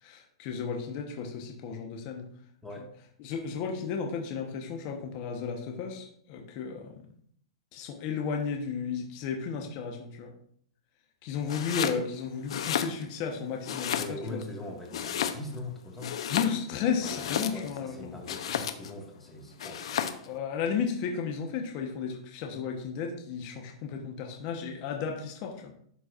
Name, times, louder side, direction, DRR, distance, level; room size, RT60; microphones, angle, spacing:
voice 1, 0.0-2.3 3.2-7.0 7.7-10.3 11.2-14.4 16.2-18.1 20.3-25.7, left 6 dB, 45° left, 2 dB, 1.1 m, -33 dB
Domestic sounds home sounds, 11.4-12.0 12.4-13.3 13.6-14.4 14.9-15.7 16.0-17.8 18.3-19.0 19.6-20.3, left 9 dB, 75° left, 0.7 m, -32 dB
voice 2, 13.9-16.1 17.0-20.2, left 1 dB, 5° left, -1 dB, 1.8 m, -42 dB
11.0 x 4.5 x 2.5 m, 0.63 s
hypercardioid pair, 130°, 3 cm